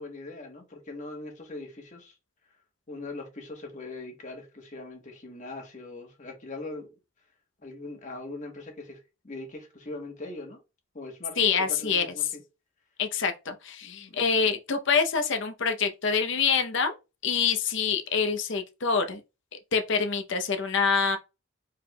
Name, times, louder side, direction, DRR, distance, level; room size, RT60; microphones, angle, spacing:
voice 1, 0.0-2.2 2.9-6.9 7.6-10.6 10.9-12.4 13.8-14.2, left 2 dB, 35° left, 1.2 m, -41 dB
voice 2, 11.4-12.1 13.0-16.9 17.2-19.2 19.7-21.2, left 5 dB, 60° left, 0.7 m, -26 dB
4.8 x 3.5 x 2.2 m
head